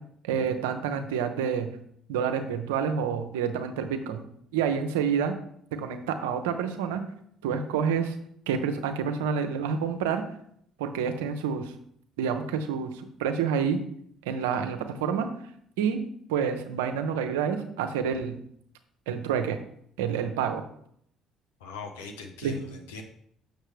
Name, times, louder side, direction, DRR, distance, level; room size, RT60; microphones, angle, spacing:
voice 1, 0.2-1.7 2.1-4.2 4.5-5.3 5.7-7.0 7.4-8.2 8.5-10.2 10.8-11.7 12.2-13.8 14.3-15.3 15.8-16.0 16.3-18.3 19.1-19.6 20.0-20.6 22.4-22.6, right 7 dB, 80° right, 7 dB, 0.7 m, -28 dB
voice 2, 21.6-23.0, left 4 dB, 80° left, 4 dB, 0.8 m, -40 dB
6.6 x 6.6 x 3.2 m, 0.68 s
hypercardioid pair, 55°, 0 cm